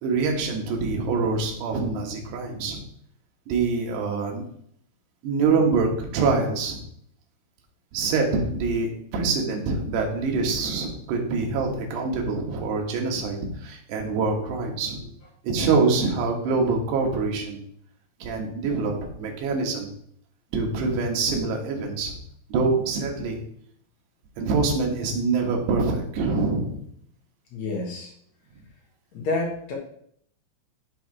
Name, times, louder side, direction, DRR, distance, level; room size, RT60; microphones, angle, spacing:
voice 1, 0.0-2.8 3.5-4.4 5.2-6.8 7.9-15.0 15.4-17.6 18.2-18.9 19.2-19.9 20.5-22.1 22.5-23.4 24.4-26.8, right 4 dB, 65° right, 0 dB, 3.5 m, -25 dB
voice 2, 27.5-28.1 29.1-29.7, left 2 dB, 75° left, -2 dB, 1.5 m, -29 dB
12.0 x 4.8 x 4.7 m, 0.67 s
omnidirectional pair, 5.6 m